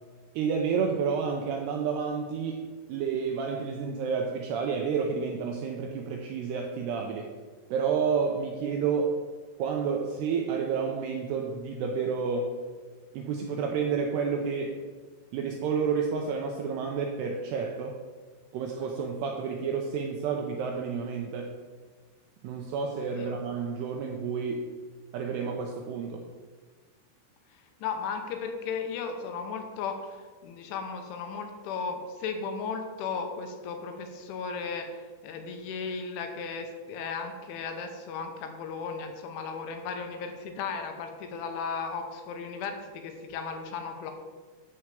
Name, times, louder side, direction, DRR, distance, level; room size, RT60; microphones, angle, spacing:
voice 1, 0.4-7.3 7.7-9.2 9.6-12.6 13.1-14.8 15.3-18.0 18.5-21.6 22.4-24.7 25.1-26.3, right 6 dB, 90° right, 2 dB, 2.4 m, -30 dB
voice 2, 27.8-44.1, left 5 dB, 80° left, 5 dB, 3.4 m, -35 dB
12.0 x 4.7 x 7.5 m, 1.4 s
omnidirectional pair, 5.7 m